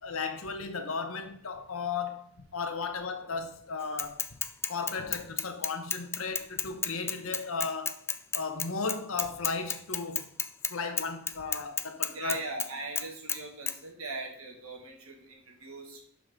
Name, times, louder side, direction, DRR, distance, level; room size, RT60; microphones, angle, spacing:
voice 1, 0.0-4.2 4.7-8.0 8.3-10.3 10.7-12.4, left 4 dB, 75° left, 1.1 m, -35 dB
Bicycle / Mechanisms, 4.0-10.7 11.0-12.7 13.0-13.4 13.7-13.8, left 6 dB, 10° left, 0.3 m, -31 dB
voice 2, 12.1-16.0, right 3 dB, 80° right, 2.1 m, -40 dB
11.5 x 5.1 x 3.7 m
head